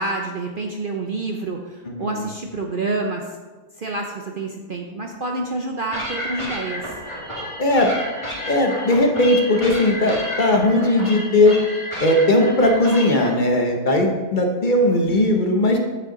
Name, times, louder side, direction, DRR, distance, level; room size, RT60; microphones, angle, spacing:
voice 1, 0.0-3.4 3.8-6.9, right 2 dB, 55° right, 1 dB, 0.6 m, -28 dB
sound 1, 5.9-13.3, left 1 dB, 20° left, 1.9 m, -31 dB
voice 2, 7.6-7.9 8.5-11.5 12.0-15.8, left 1 dB, 40° left, 3 dB, 0.8 m, -18 dB
8.0 x 7.8 x 3.8 m, 1.3 s
omnidirectional pair, 1.7 m